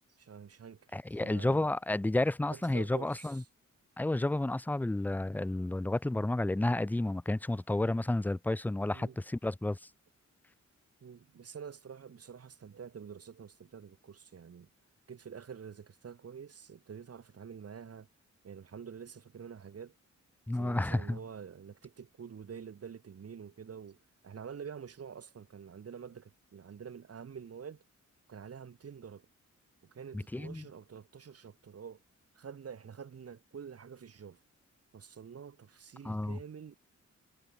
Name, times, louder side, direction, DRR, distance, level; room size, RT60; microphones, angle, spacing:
voice 1, 0.2-1.7 2.5-3.4 8.9-9.2 11.0-14.7 15.1-18.1 18.4-19.9 20.5-24.0 24.2-27.8 28.3-29.3 29.9-32.0 32.3-34.4 34.9-36.8, right 7 dB, 55° right, 4.8 m, -47 dB
voice 2, 0.9-3.4 4.0-9.8 20.5-21.2 30.1-30.7 36.0-36.4, left 2 dB, 5° left, 0.4 m, -31 dB
wide cardioid pair, 170°, 29 cm